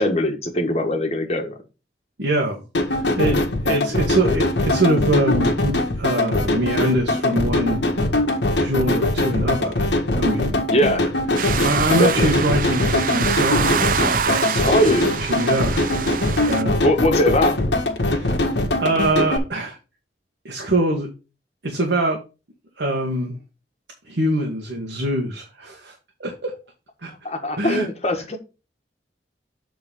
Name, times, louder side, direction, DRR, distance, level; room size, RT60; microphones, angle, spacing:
voice 1, 0.0-1.6 10.7-11.0 12.0-12.3 14.6-15.1 16.8-17.6 27.2-28.4, left 1 dB, 35° left, 4 dB, 1.4 m, -20 dB
voice 2, 2.2-2.6 3.0-3.4 3.6-7.8 8.6-9.9 10.2-11.1 11.4-14.7 15.2-16.9 18.0-18.4 18.8-19.8 20.4-21.1 21.6-22.2 22.8-23.4 24.1-25.9 26.2-26.5 27.0-27.1 27.6-27.9, right 1 dB, 85° right, 1 dB, 1.6 m, -24 dB
sound 1, 2.7-19.4, left 1 dB, 90° left, 1.6 m, -22 dB
sound 2, 11.4-16.6, right 7 dB, 50° right, 0.4 m, -25 dB
7.7 x 4.0 x 5.4 m, 0.30 s
head